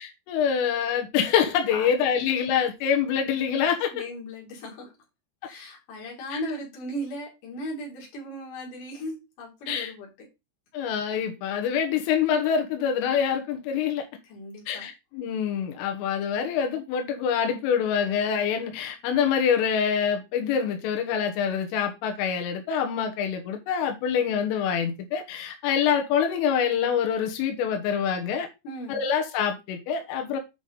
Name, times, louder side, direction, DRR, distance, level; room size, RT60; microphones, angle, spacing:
voice 1, 0.0-3.9 6.3-6.4 9.7-9.9 10.7-14.1 14.7-28.5 28.9-30.4, left 7 dB, 85° left, 3.8 m, -25 dB
voice 2, 3.9-4.9 5.4-10.1 14.2-14.9 28.6-29.0, equal, 45° left, 4.3 m, -37 dB
9.2 x 5.3 x 4.0 m
omnidirectional pair, 5.6 m